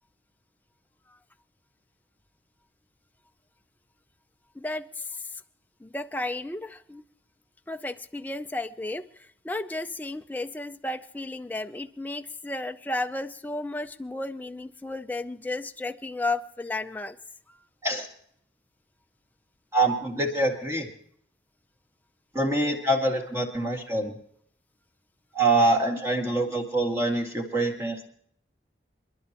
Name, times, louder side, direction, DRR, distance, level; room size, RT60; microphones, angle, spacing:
voice 1, 4.5-5.4 5.8-7.0 7.7-17.2 17.5-17.6, left 2 dB, 10° left, 8 dB, 0.5 m, -33 dB
voice 2, 19.7-20.9 22.3-24.2 25.3-28.1, right 2 dB, 15° right, 2 dB, 2.1 m, -25 dB
28.5 x 11.0 x 2.9 m, 0.63 s
head